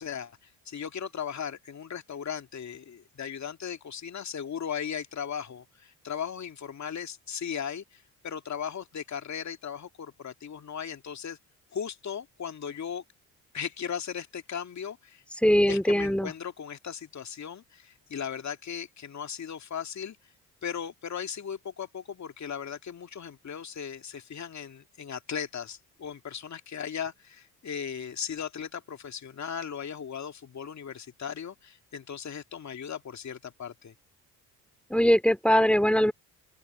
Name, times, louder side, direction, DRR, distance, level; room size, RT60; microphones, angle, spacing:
voice 1, 0.0-11.4 11.7-13.0 13.5-15.2 15.7-20.2 20.6-33.9, left 7 dB, 45° left, 2.4 m, -37 dB
voice 2, 15.4-16.3 34.9-36.1, equal, 5° left, 3.0 m, -21 dB
open air
hypercardioid pair, 55°, 39 cm